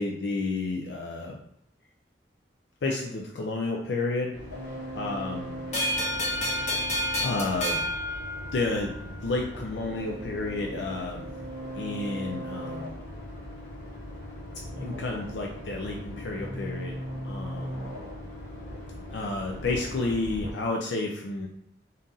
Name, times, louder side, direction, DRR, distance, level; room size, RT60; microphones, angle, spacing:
voice 1, 0.0-1.4 2.8-4.3 4.9-5.6 7.2-7.8 8.5-11.3 11.8-12.9 14.8-16.9 17.3-17.8 19.1-21.5, left 3 dB, 80° left, 0 dB, 0.5 m, -31 dB
sound 1, 4.3-20.5, equal, 65° left, 1.1 m, -39 dB
sound 2, 5.7-9.0, left 1 dB, 40° left, 0.8 m, -29 dB
4.0 x 2.5 x 3.8 m, 0.76 s
head